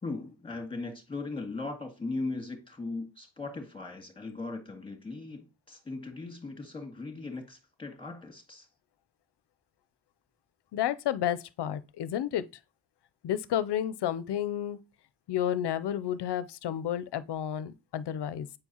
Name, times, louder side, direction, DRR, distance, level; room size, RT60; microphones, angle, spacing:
voice 1, 0.0-8.7, left 3 dB, 10° left, 2.1 m, -38 dB
voice 2, 10.7-12.4 13.2-14.8 15.3-18.5, left 10 dB, 60° left, 0.6 m, -31 dB
7.7 x 4.5 x 2.9 m
cardioid pair, 70°, 45 cm